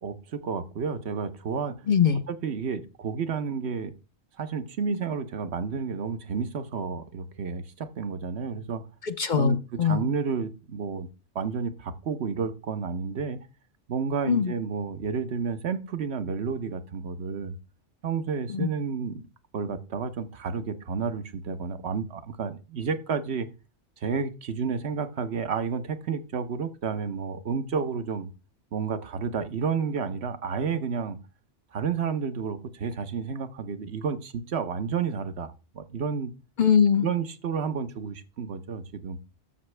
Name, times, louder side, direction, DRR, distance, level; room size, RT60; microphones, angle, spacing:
voice 1, 0.0-1.8 2.3-3.9 4.4-8.8 9.4-11.1 11.3-13.4 13.9-17.5 18.0-19.2 19.5-23.5 24.0-28.3 28.7-31.2 31.7-36.3 37.0-39.2, right 6 dB, 70° right, 10 dB, 1.1 m, -31 dB
voice 2, 1.9-2.2 9.0-10.1 14.2-14.5 18.5-18.7 36.6-37.1, left 7 dB, 50° left, 9 dB, 0.7 m, -22 dB
11.5 x 7.0 x 3.3 m, 0.31 s
omnidirectional pair, 1.2 m